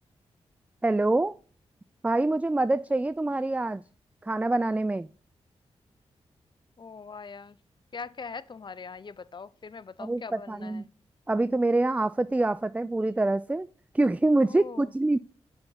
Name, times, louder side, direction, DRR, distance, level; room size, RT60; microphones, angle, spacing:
voice 1, 0.8-1.4 2.0-3.8 4.2-5.1 10.0-10.8 11.3-13.7 13.9-15.2, right 2 dB, 10° right, 0.3 m, -25 dB
voice 2, 6.8-7.6 7.9-10.9 14.4-14.9, left 5 dB, 40° left, 0.5 m, -42 dB
6.8 x 5.8 x 3.9 m
supercardioid pair, 40°, 12 cm